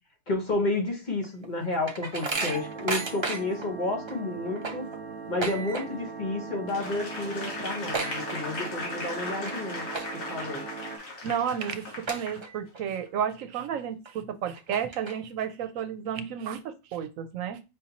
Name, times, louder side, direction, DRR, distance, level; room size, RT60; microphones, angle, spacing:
voice 1, 0.3-4.9 5.3-9.9 10.1-10.7, left 2 dB, 40° left, 1.1 m, -31 dB
sound 1, 1.2-3.7 4.1-4.2 4.5-6.2 6.4-6.8 7.1-7.2 7.4-8.8 9.3-9.5 9.9-10.4 10.9-11.0 11.6-11.7 12.1-12.8 13.2-13.3 14.1-14.2 14.5-15.4, right 3 dB, 30° right, 0.5 m, -34 dB
sound 2, 2.3-11.0, right 5 dB, 55° right, 1.3 m, -40 dB
Applause / Crowd, 6.7-12.4 12.9-13.1, left 2 dB, 85° left, 1.7 m, -37 dB
voice 2, 11.2-17.6, right 8 dB, 80° right, 1.0 m, -32 dB
5.5 x 2.7 x 2.8 m
omnidirectional pair, 1.4 m